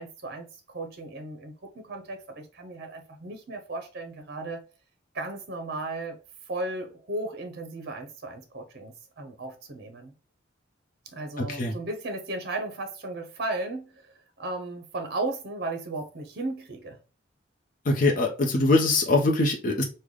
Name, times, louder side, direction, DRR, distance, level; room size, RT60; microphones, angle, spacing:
voice 1, 0.0-4.6 5.1-6.2 6.5-10.1 11.1-17.0, right 2 dB, 55° right, 0.6 m, -35 dB
voice 2, 11.4-11.7 17.9-19.8, left 2 dB, 45° left, 0.6 m, -23 dB
3.2 x 2.2 x 3.6 m
head